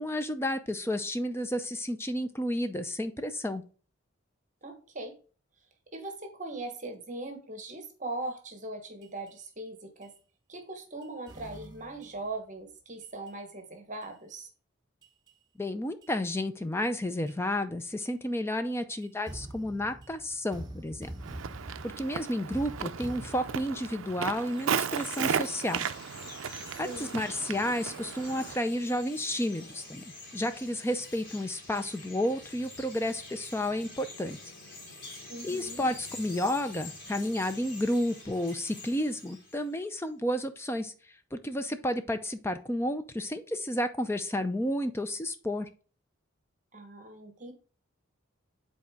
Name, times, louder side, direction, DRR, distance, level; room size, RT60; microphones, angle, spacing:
voice 1, 0.0-3.6 15.6-21.1 21.8-25.9 26.8-34.4 35.4-40.9 41.3-45.7, left 1 dB, 10° left, 9 dB, 0.5 m, -31 dB
voice 2, 4.6-5.1 5.9-10.1 10.5-14.5 26.8-27.1 35.3-35.8 46.7-47.5, right 2 dB, 40° right, 5 dB, 1.2 m, -40 dB
sound 1, 9.0-9.3 10.0-10.1 11.0-12.3 13.0-13.3 14.0-14.1 15.0-15.3 16.0-16.1 17.0-17.3 18.0-18.1 19.0-24.8, right 1 dB, 20° right, 1.0 m, -45 dB
Walk footsteps, 21.2-28.6, right 7 dB, 80° right, 0.4 m, -35 dB
Chirp tweet, 24.3-39.9, left 2 dB, 60° left, 2.8 m, -47 dB
7.6 x 4.1 x 3.6 m, 0.38 s
head